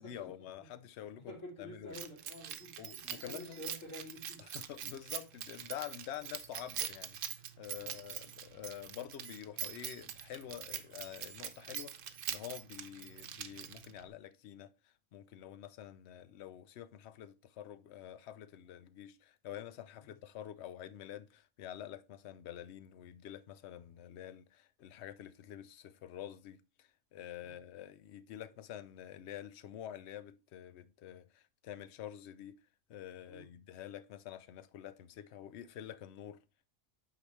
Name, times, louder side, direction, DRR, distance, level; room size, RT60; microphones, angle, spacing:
voice 1, 0.0-2.0 2.8-3.6 4.4-32.6 32.9-36.4, left 11 dB, 65° left, 0.8 m, -48 dB
voice 2, 1.3-4.5 7.8-8.0 20.0-20.1 27.4-27.6 33.3-33.5, left 1 dB, 80° left, 3.0 m, -49 dB
Keys jangling, 1.9-14.1, right 9 dB, 80° right, 1.1 m, -44 dB
8.5 x 5.0 x 3.1 m
omnidirectional pair, 1.3 m